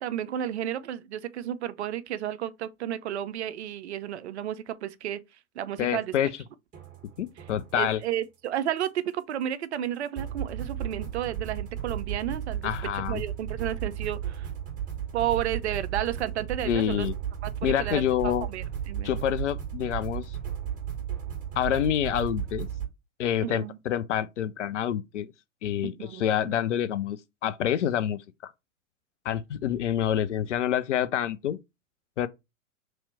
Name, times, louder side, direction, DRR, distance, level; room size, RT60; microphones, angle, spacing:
voice 1, 0.0-5.2 5.6-6.1 7.7-14.5 15.1-17.1 17.4-19.2 23.4-23.8 25.8-26.6, right 11 dB, 55° right, 0.5 m, -32 dB
voice 2, 5.8-6.3 7.2-8.0 12.6-13.2 16.6-17.1 17.6-18.5 19.0-20.4 21.6-22.7 23.2-25.3 25.6-28.5 29.2-31.6 32.2-32.3, left 10 dB, 60° left, 0.6 m, -27 dB
sound 1, 6.7-7.9 10.2-22.9, right 9 dB, 20° right, 1.4 m, -34 dB
3.0 x 2.9 x 4.2 m
figure-of-eight pair, 105°, 42 cm